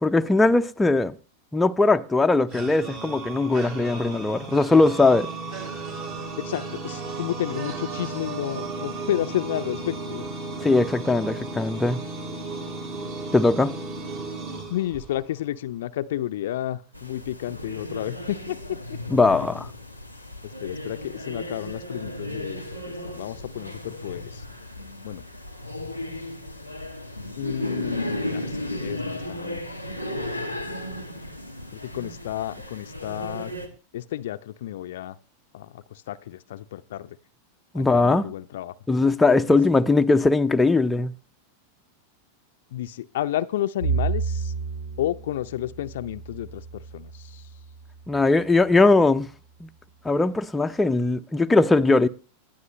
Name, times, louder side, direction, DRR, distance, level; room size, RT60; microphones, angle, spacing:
voice 1, 0.0-1.1 1.5-5.3 10.6-12.0 13.3-13.8 19.1-19.7 37.7-38.3 38.9-41.1 48.1-49.3 49.6-49.7 50.0-52.1, left 3 dB, 10° left, 0.6 m, -20 dB
sound 1, 2.5-15.4, right 3 dB, 50° right, 4.8 m, -34 dB
voice 2, 6.4-10.2 14.7-19.2 20.6-24.4 25.0-25.2 27.4-29.6 30.0-30.2 31.7-33.5 33.9-35.1 35.5-37.2 37.7-38.7 39.5-39.6 42.7-44.5 45.0-47.4, left 13 dB, 55° left, 0.6 m, -31 dB
sound 2, 16.9-33.7, left 1 dB, 90° right, 1.5 m, -35 dB
Bowed string instrument, 43.8-48.2, right 5 dB, 70° right, 3.5 m, -31 dB
19.0 x 12.5 x 3.1 m
figure-of-eight pair, 90°, 0 cm